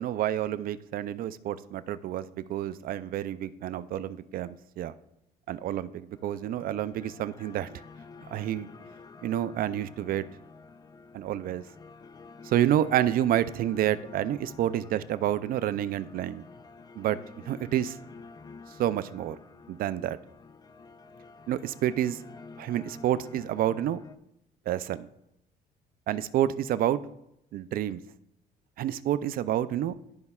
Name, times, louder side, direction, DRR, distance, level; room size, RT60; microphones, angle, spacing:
voice 1, 0.0-4.9 5.5-7.8 8.3-8.7 9.2-10.2 11.1-11.6 12.4-16.4 17.0-17.2 17.5-18.0 18.8-19.4 19.7-20.2 21.5-22.2 22.6-24.0 24.7-25.1 26.1-27.0 27.5-28.0 28.8-29.9, right 11 dB, 60° right, 14 dB, 0.4 m, -29 dB
sound 1, 6.1-24.2, left 4 dB, 25° left, 0.4 m, -49 dB
12.5 x 5.4 x 2.3 m, 0.81 s
cardioid pair, 110°, 17 cm